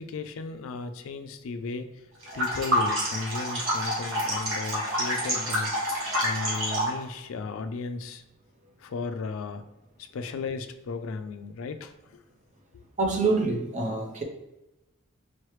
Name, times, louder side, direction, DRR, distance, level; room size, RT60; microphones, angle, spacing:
voice 1, 0.0-2.0 2.3-5.7 6.2-8.2 8.8-9.6 10.0-11.9, left 4 dB, 75° left, 8 dB, 0.4 m, -35 dB
sound 1, 2.2-7.0, equal, 70° right, 1.4 m, -28 dB
voice 2, 13.0-14.2, right 3 dB, 35° right, 2 dB, 0.6 m, -26 dB
4.2 x 3.1 x 3.1 m, 0.96 s
head